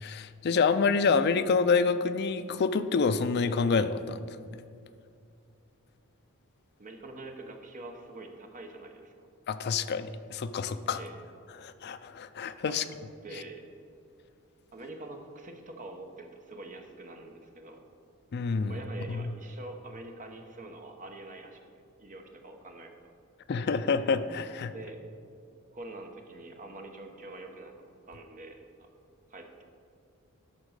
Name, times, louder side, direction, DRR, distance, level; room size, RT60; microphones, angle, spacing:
voice 1, 0.0-4.4 9.5-11.0 11.6-12.8 18.3-18.8 19.1-19.3 23.5-24.7, left 5 dB, 45° left, 11 dB, 0.4 m, -27 dB
voice 2, 6.8-9.1 10.9-11.1 12.7-12.8 13.2-13.6 14.7-17.8 18.7-21.6 22.0-22.9 24.7-25.0 25.7-27.7 28.1-28.9 29.3-29.6, right 2 dB, 35° right, 4 dB, 0.9 m, -45 dB
11.0 x 3.7 x 6.5 m, 2.4 s
head